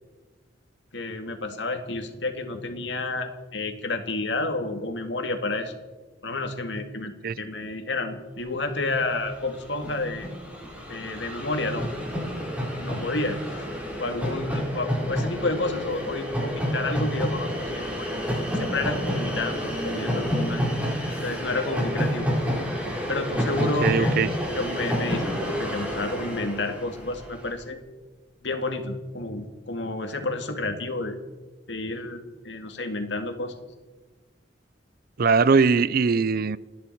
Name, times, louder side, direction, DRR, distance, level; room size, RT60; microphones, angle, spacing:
voice 1, 0.9-5.7 6.2-10.3 10.9-11.9 12.8-13.6 14.0-18.1 18.5-20.7 21.2-22.3 23.1-27.8 28.4-31.1 31.7-33.5, left 2 dB, 75° left, 2.1 m, -30 dB
Train, 8.8-8.9 9.1-27.5, equal, 10° right, 4.4 m, -29 dB
voice 2, 23.6-24.3 35.2-36.6, right 5 dB, 55° right, 0.5 m, -21 dB
30.0 x 10.5 x 4.6 m
head